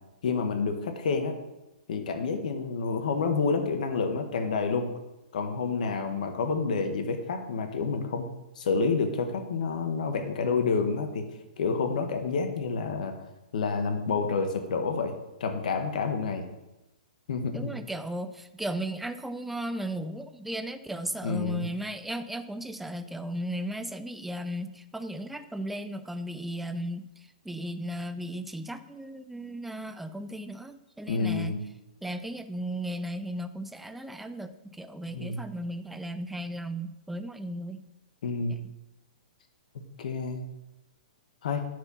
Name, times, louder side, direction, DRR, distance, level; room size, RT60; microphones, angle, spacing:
voice 1, 0.2-1.3 1.9-4.9 5.3-8.2 8.6-11.3 11.6-13.1 13.5-15.1 15.4-16.5 17.3-17.7 21.2-21.6 31.1-31.6 35.1-35.4 38.2-38.6 40.0-40.4 41.4-41.6, left 4 dB, 65° left, 6 dB, 1.5 m, -28 dB
voice 2, 17.5-31.5 32.0-37.8, right 1 dB, 5° right, 10 dB, 0.5 m, -36 dB
9.4 x 4.8 x 5.5 m, 0.94 s
hypercardioid pair, 135°, 5 cm